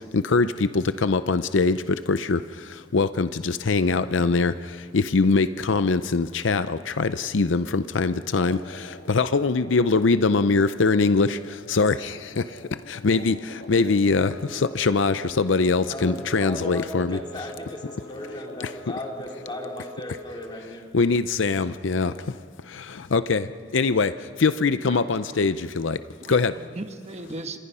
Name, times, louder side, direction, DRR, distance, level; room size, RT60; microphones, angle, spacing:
voice 1, 0.1-0.5 0.7-1.8 2.1-2.4 2.9-4.5 4.9-8.6 9.1-11.4 11.7-12.1 12.9-13.3 13.7-17.2 20.9-22.1 23.1-23.4 23.7-24.1 24.4-26.0 26.3-26.5, left 4 dB, 70° left, 12 dB, 0.6 m, -22 dB
sound 1, 8.4-19.9, left 1 dB, 55° left, 1.7 m, -46 dB
Wind instrument woodwind instrument, 14.3-20.7, equal, 5° right, 1.0 m, -45 dB
voice 2, 15.9-20.8, left 1 dB, 25° left, 0 dB, 3.5 m, -36 dB
voice 3, 24.8-25.5 26.2-27.6, right 2 dB, 35° right, 6 dB, 1.3 m, -38 dB
29.0 x 26.5 x 5.6 m, 2.1 s
head